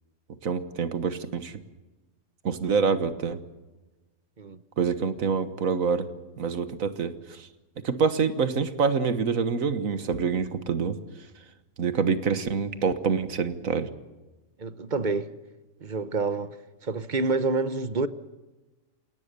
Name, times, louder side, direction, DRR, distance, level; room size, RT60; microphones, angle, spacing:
voice 1, 0.4-1.6 2.4-3.4 4.8-6.1 6.4-7.5 7.8-11.0 11.8-13.9, right 5 dB, 90° right, 1.7 m, -26 dB
voice 2, 14.6-15.3 15.8-16.6 16.8-18.1, right 3 dB, 40° right, 1.1 m, -28 dB
28.5 x 18.0 x 6.8 m
omnidirectional pair, 1.4 m